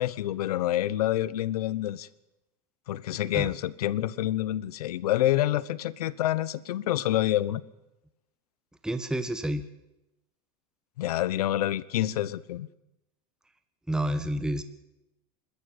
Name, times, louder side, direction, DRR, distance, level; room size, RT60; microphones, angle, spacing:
voice 1, 0.0-2.1 2.9-7.6 11.0-12.7, left 13 dB, 90° left, 19 dB, 1.0 m, -27 dB
voice 2, 8.8-9.6 13.9-14.6, right 1 dB, 5° right, 9 dB, 1.3 m, -29 dB
26.0 x 13.5 x 8.3 m, 0.95 s
supercardioid pair, 115°, 19 cm